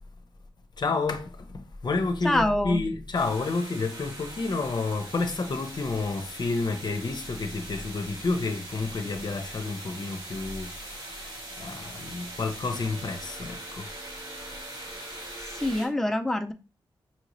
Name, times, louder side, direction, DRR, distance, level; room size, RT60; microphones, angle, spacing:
voice 1, 0.8-13.9, left 3 dB, 55° left, 0.7 m, -30 dB
voice 2, 2.2-2.8 15.5-16.5, left 1 dB, 5° left, 0.4 m, -25 dB
sound 1, 3.1-15.9, right 1 dB, 65° right, 2.4 m, -42 dB
5.6 x 2.6 x 3.0 m
cardioid pair, 65°, 9 cm